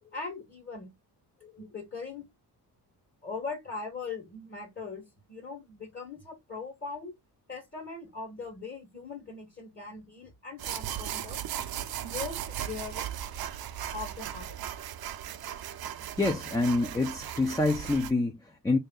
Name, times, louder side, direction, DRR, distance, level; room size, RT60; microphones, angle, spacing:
voice 1, 0.0-0.9 1.4-2.3 3.2-7.1 7.5-11.4 12.0-13.1 13.9-14.6, left 4 dB, 30° left, 1.4 m, -40 dB
sound 1, 10.6-18.1, right 10 dB, 65° right, 0.7 m, -37 dB
voice 2, 16.2-18.8, left 2 dB, 10° left, 0.6 m, -27 dB
3.3 x 2.8 x 3.7 m
cardioid pair, 90°, 40 cm